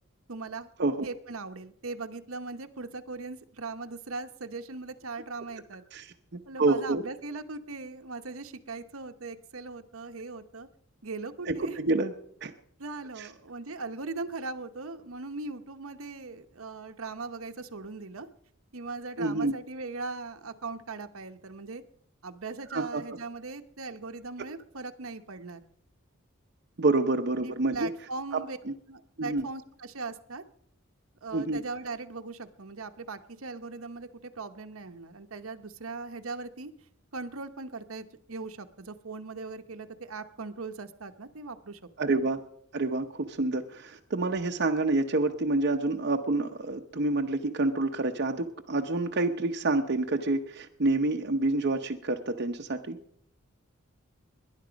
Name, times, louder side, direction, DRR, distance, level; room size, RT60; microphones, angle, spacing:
voice 1, 0.3-0.7 1.0-5.8 6.5-10.7 11.0-11.8 12.8-18.3 18.7-21.8 22.2-25.6 27.4-28.6 28.9-30.4 31.2-36.7 37.1-42.1, right 3 dB, 90° right, 7 dB, 1.0 m, -39 dB
voice 2, 5.9-7.0 11.5-12.1 12.4-12.5 13.2-13.3 19.2-19.5 22.7-23.0 26.8-27.9 28.3-28.7 29.2-29.5 31.3-31.6 42.0-42.4 42.7-53.0, right 2 dB, 55° right, 3 dB, 0.8 m, -28 dB
19.0 x 11.0 x 5.1 m, 0.69 s
head